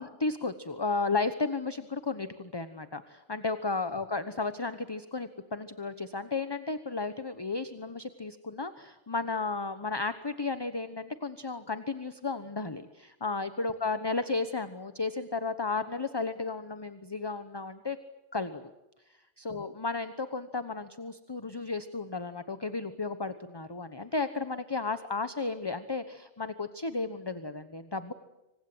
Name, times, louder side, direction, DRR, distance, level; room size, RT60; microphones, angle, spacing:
voice 1, 0.0-18.0 18.3-18.6 19.4-28.1, left 3 dB, 20° left, 11 dB, 1.1 m, -33 dB
27.0 x 25.0 x 7.9 m, 1.0 s
omnidirectional pair, 1.2 m